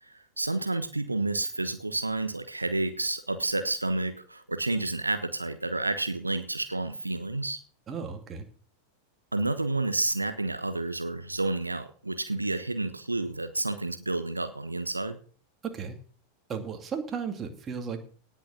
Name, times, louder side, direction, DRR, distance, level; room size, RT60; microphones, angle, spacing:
voice 1, 0.0-7.6 9.3-15.2, right 2 dB, 85° right, 9 dB, 1.2 m, -30 dB
voice 2, 7.9-8.5 15.6-16.0 16.5-18.0, right 6 dB, 25° right, 6 dB, 2.5 m, -35 dB
18.0 x 6.2 x 6.3 m, 0.42 s
figure-of-eight pair, 90°, 0 cm